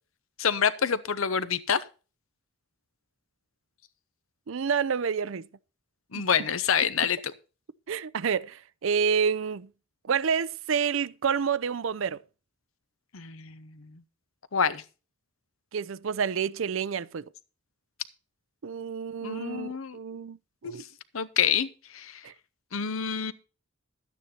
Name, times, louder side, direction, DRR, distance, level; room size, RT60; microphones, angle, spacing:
voice 1, 0.4-1.8 6.1-7.2 13.1-14.0 14.5-14.8 19.2-20.0 20.6-20.7 21.1-21.7 21.9-22.2 22.7-23.3, left 7 dB, 75° left, 0.8 m, -27 dB
voice 2, 4.5-5.5 6.1-6.2 7.0-7.1 7.9-9.7 10.1-12.2 15.7-17.3 18.6-20.4 20.6-20.8 22.2-22.3, right 6 dB, 65° right, 0.5 m, -28 dB
12.0 x 9.2 x 4.3 m
head